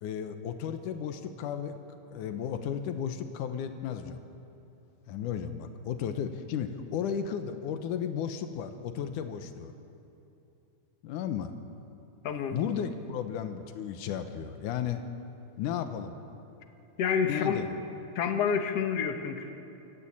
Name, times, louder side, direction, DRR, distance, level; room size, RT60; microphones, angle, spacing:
voice 1, 0.0-1.8 2.1-4.3 5.1-9.7 11.0-11.5 12.5-15.0 15.6-16.2 17.2-17.8, left 8 dB, 90° left, 8 dB, 2.5 m, -34 dB
voice 2, 12.2-12.6 17.0-17.6 18.2-19.5, left 7 dB, 60° left, 6 dB, 2.1 m, -28 dB
25.5 x 14.0 x 8.6 m, 2.8 s
omnidirectional pair, 3.5 m